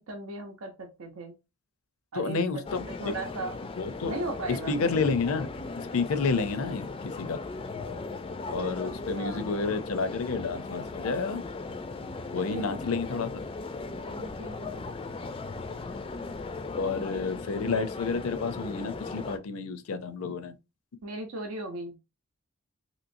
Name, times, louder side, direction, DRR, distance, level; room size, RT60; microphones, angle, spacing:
voice 1, 0.1-1.3 2.1-3.6 4.1-4.8 8.8-9.5 12.3-12.8 14.0-14.8 21.0-22.0, right 2 dB, 85° right, 0.7 m, -37 dB
voice 2, 2.1-2.8 3.8-4.1 4.7-5.5 5.8-7.4 8.5-11.4 12.3-13.3 16.8-20.5, left 4 dB, 80° left, 0.5 m, -30 dB
sound 1, 2.7-19.4, left 3 dB, 25° left, 0.3 m, -37 dB
3.0 x 3.0 x 2.6 m
head